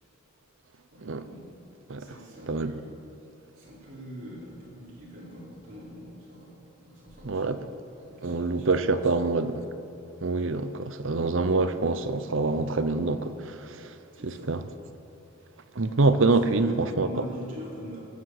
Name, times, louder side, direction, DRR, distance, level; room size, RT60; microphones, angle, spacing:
voice 1, 0.9-1.4 1.9-3.0 3.5-7.5 8.0-9.7 14.1-14.5 16.5-18.0, equal, 40° right, 4.3 m, -43 dB
voice 2, 7.2-7.6 8.2-9.5 10.2-13.9 14.2-14.6 15.7-17.1, right 3 dB, 65° right, 0.7 m, -25 dB
19.5 x 7.5 x 7.9 m
head